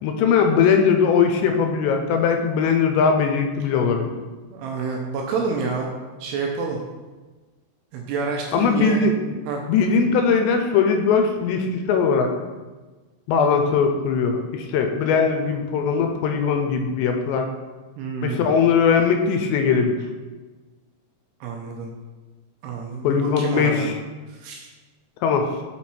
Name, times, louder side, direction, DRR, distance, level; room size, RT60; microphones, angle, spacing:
voice 1, 0.0-4.1 8.5-9.4 9.7-12.3 13.3-17.5 18.2-20.0 23.0-24.0 25.2-25.5, left 6 dB, 80° left, 5 dB, 2.7 m, -20 dB
voice 2, 4.5-5.9 6.2-6.8 7.9-9.0 9.5-9.6 18.0-18.5 21.4-21.9 22.6-23.9 24.3-24.7, right 4 dB, 80° right, 0 dB, 2.5 m, -28 dB
6.3 x 5.7 x 4.2 m, 1.3 s
omnidirectional pair, 5.2 m